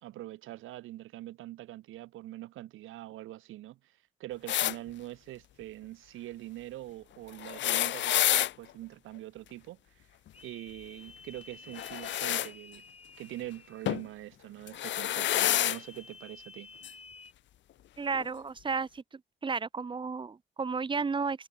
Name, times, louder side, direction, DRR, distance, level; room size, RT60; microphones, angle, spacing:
voice 1, 0.0-10.1 10.4-12.8 13.2-16.7, right 15 dB, 90° right, 3.5 m, -44 dB
sound 1, 4.5-4.8 7.4-8.5 11.7-12.5 13.9-14.1 14.7-15.8 16.8-16.9 18.1-18.2, left 13 dB, 70° left, 0.7 m, -28 dB
sound 2, 10.3-14.2 15.1-17.3, left 4 dB, 30° left, 5.6 m, -52 dB
voice 2, 18.0-19.0 19.4-21.5, right 5 dB, 25° right, 0.9 m, -32 dB
cardioid pair, 90°, 20 cm